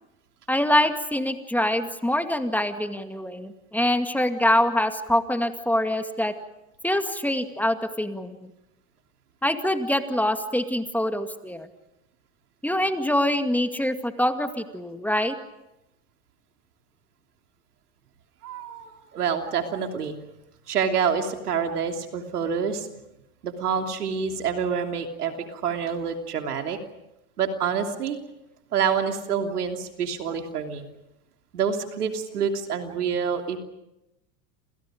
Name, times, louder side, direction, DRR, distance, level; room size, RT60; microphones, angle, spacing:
voice 1, 0.5-6.3 6.8-8.5 9.4-11.7 12.6-15.4, left 1 dB, 5° left, 7 dB, 2.2 m, -24 dB
voice 2, 18.4-20.1 20.7-22.9 23.4-26.8 27.4-28.2 28.7-30.8 31.5-33.6, right 7 dB, 90° right, 4 dB, 3.2 m, -27 dB
29.5 x 27.5 x 5.1 m, 0.90 s
hypercardioid pair, 95°, 44 cm